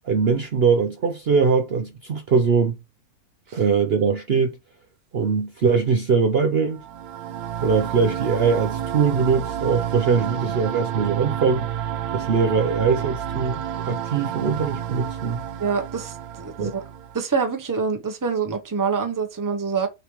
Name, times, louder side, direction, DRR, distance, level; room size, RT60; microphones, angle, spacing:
voice 1, 0.0-2.8 3.5-4.5 5.1-6.8 7.6-11.7 12.1-15.4 16.6-16.8, right 5 dB, 55° right, 0.8 m, -21 dB
sound 1, 6.7-17.2, right 10 dB, 90° right, 1.2 m, -30 dB
voice 2, 15.6-16.8 17.1-19.9, right 5 dB, 15° right, 0.8 m, -26 dB
6.6 x 3.2 x 4.6 m
omnidirectional pair, 1.5 m